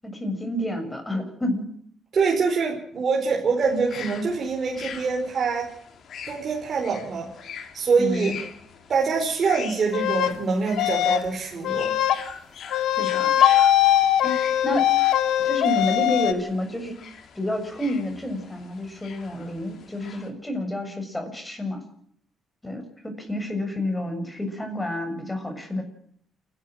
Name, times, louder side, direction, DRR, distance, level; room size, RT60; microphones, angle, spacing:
voice 1, 0.0-1.7 8.0-8.4 13.0-13.4 14.2-14.9 15.4-17.0 17.4-21.8 22.6-25.8, left 1 dB, 10° left, 5 dB, 7.3 m, -29 dB
voice 2, 2.1-5.7 6.3-7.3 7.7-8.4 8.9-11.9, right 5 dB, 45° right, 0 dB, 4.7 m, -24 dB
sound 1, 3.6-20.3, left 7 dB, 60° left, 3.7 m, -43 dB
sound 2, 9.9-10.3 10.8-11.3 11.6-12.2 12.7-16.3, left 12 dB, 85° left, 1.5 m, -21 dB
29.0 x 12.0 x 7.7 m, 0.66 s
cardioid pair, 90°, 0 cm